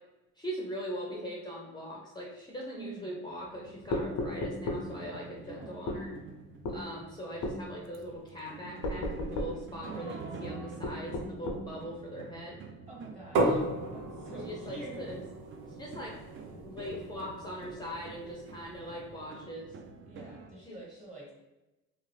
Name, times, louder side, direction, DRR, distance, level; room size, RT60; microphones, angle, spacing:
voice 1, 0.4-6.1 6.7-10.1 10.4-12.6 13.4-13.7 14.3-15.2 15.8-16.1 16.6-19.7 20.6-20.8, equal, 15° left, -3 dB, 0.5 m, -41 dB
voice 2, 2.7-3.3 5.4-6.0 9.9-10.8 12.9-13.6 13.9-15.1 20.1-21.3, right 2 dB, 25° right, -3 dB, 1.2 m, -47 dB
sound 1, 3.3-20.5, right 4 dB, 40° right, 0.4 m, -47 dB
sound 2, 3.9-4.9 5.9-6.1 6.7-6.8 7.4-7.6 8.8-9.6 10.8-11.7, left 2 dB, 85° left, 0.6 m, -33 dB
sound 3, 13.4-19.0, right 1 dB, 90° right, 0.7 m, -35 dB
2.4 x 2.4 x 3.1 m, 1.0 s
cardioid pair, 90°, 30 cm